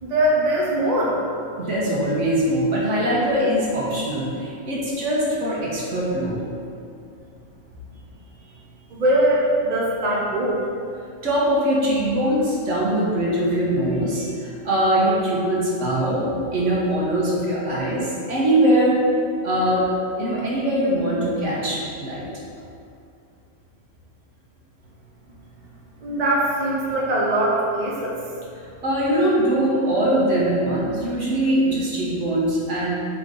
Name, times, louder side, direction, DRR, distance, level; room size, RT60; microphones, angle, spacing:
voice 1, 0.0-1.2 8.9-10.6 26.0-28.1, right 1 dB, 35° right, -5 dB, 1.0 m, -21 dB
voice 2, 1.6-6.4 11.2-19.0 19.4-19.9 20.2-22.3 28.5-32.9, right 1 dB, 65° right, -6 dB, 1.7 m, -22 dB
8.0 x 4.4 x 4.0 m, 2.5 s
omnidirectional pair, 1.4 m